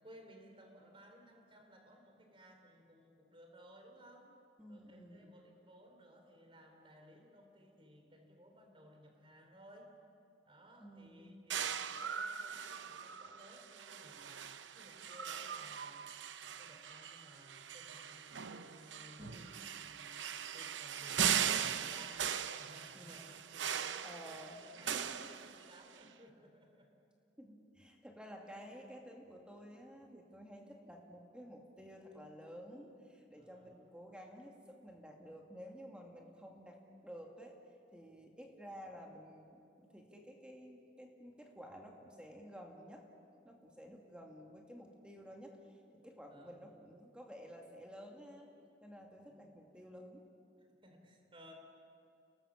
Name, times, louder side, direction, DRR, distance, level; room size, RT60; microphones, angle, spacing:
voice 1, 0.0-4.3 4.7-9.9 10.4-16.1 16.4-22.3 22.6-26.9 28.5-28.6 33.4-33.9 46.3-46.8 49.3-49.6 50.6-51.5, equal, 30° right, 3 dB, 3.5 m, -59 dB
voice 2, 4.6-5.3 10.8-11.4 19.2-19.7 22.9-23.3 23.7-24.6 24.9-25.3 27.4-37.6 37.9-43.0 43.4-48.5 48.8-50.3, equal, 5° right, 1 dB, 2.4 m, -53 dB
sound 1, 11.5-26.0, right 8 dB, 75° right, 0.8 m, -39 dB
29.5 x 18.5 x 7.3 m, 2.5 s
head